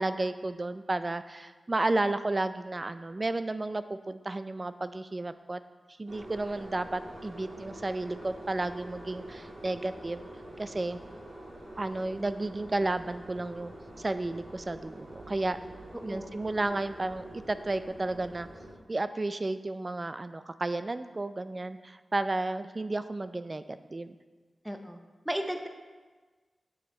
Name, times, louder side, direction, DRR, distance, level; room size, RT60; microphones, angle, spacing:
voice 1, 0.0-5.6 6.0-10.3 10.6-11.0 11.8-15.6 16.0-18.5 18.9-24.2, right 2 dB, 30° right, 12 dB, 0.4 m, -32 dB
sound 1, 6.1-18.7, right 1 dB, 80° right, 2.2 m, -46 dB
voice 2, 24.6-25.0 25.3-25.7, equal, 10° right, 5 dB, 0.7 m, -34 dB
9.5 x 6.7 x 4.3 m, 1.3 s
wide cardioid pair, 115°, 0 cm